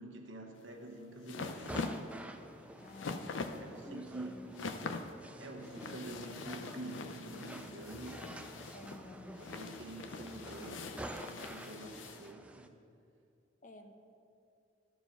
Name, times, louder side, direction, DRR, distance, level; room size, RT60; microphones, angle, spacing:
voice 1, 0.0-1.7 3.6-4.4 5.4-8.2 9.4-10.9 11.3-12.7, right 1 dB, 90° right, 2 dB, 1.1 m, -47 dB
sound 1, 0.6-12.3, left 3 dB, 85° left, 0.6 m, -44 dB
sound 2, 1.4-12.7, right 1 dB, 5° right, 0.3 m, -50 dB
voice 2, 2.8-4.5 5.8-6.0 8.6-9.3 13.6-13.9, left 3 dB, 45° left, 6 dB, 0.7 m, -53 dB
12.0 x 4.8 x 5.6 m, 2.6 s
head